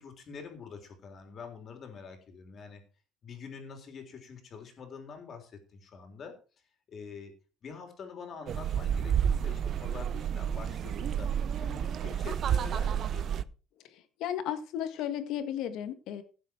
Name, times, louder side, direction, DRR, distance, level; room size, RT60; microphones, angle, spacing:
voice 1, 0.0-2.8 3.2-6.3 6.9-7.3 7.6-11.3 11.6-13.5, left 5 dB, 35° left, 5 dB, 3.6 m, -46 dB
sound 1, 8.5-13.4, right 8 dB, 40° right, 0.6 m, -30 dB
voice 2, 13.8-16.2, left 10 dB, 60° left, 10 dB, 1.8 m, -34 dB
16.5 x 7.5 x 4.6 m, 0.35 s
cardioid pair, 165°, 0 cm